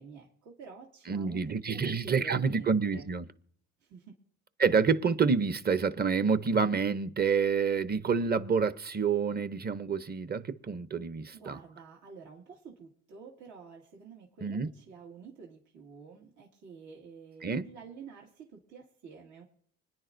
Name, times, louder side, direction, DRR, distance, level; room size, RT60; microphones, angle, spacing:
voice 1, 0.0-3.1 3.8-4.1 11.3-19.4, right 5 dB, 80° right, 2.2 m, -49 dB
voice 2, 1.1-3.2 4.6-11.6 14.4-14.7 17.4-17.7, right 5 dB, 30° right, 0.8 m, -28 dB
25.5 x 10.0 x 2.6 m
cardioid pair, 90°, 30 cm